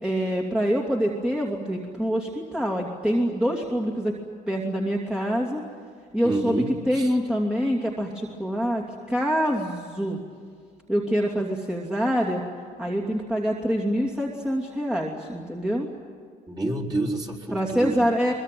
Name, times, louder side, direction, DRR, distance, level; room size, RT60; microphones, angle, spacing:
voice 1, 0.0-4.2 4.5-5.6 6.1-10.2 10.9-12.4 12.8-15.9 17.5-18.3, equal, 5° right, -2 dB, 2.7 m, -25 dB
voice 2, 6.2-7.2 16.5-18.0, right 2 dB, 25° right, 0 dB, 4.3 m, -29 dB
23.5 x 22.0 x 9.3 m, 2.1 s
cardioid pair, 110°, 17 cm